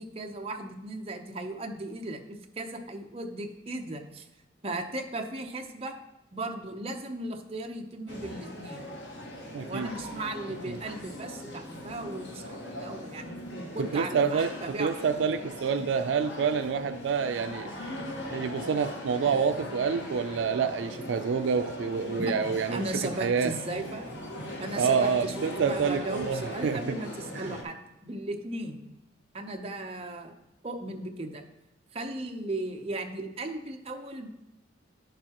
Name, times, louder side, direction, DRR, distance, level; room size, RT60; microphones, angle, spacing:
voice 1, 0.0-4.3 4.6-6.0 6.3-8.9 9.6-14.9 22.2-22.4 22.7-24.1 24.6-27.8 28.0-28.9 29.3-30.3 30.6-31.4 31.9-34.3, right 2 dB, 30° right, 3 dB, 0.7 m, -36 dB
sound 1, 8.1-27.6, left 1 dB, 70° left, 1.5 m, -40 dB
voice 2, 9.5-9.9 10.7-10.8 13.8-17.7 18.3-22.8 23.2-23.5 24.8-27.0 27.4-27.5, right 6 dB, 75° right, 9 dB, 0.3 m, -28 dB
10.5 x 6.7 x 2.9 m, 0.98 s
head